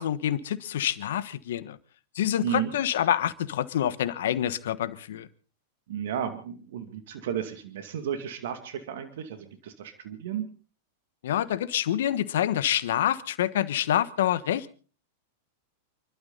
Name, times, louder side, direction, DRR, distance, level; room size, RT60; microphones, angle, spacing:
voice 1, 0.0-1.8 2.1-5.3 11.2-14.8, left 11 dB, 70° left, 1.2 m, -27 dB
voice 2, 5.9-10.5, right 9 dB, 70° right, 2.4 m, -33 dB
29.0 x 12.0 x 4.0 m
hypercardioid pair, 105°, 0 cm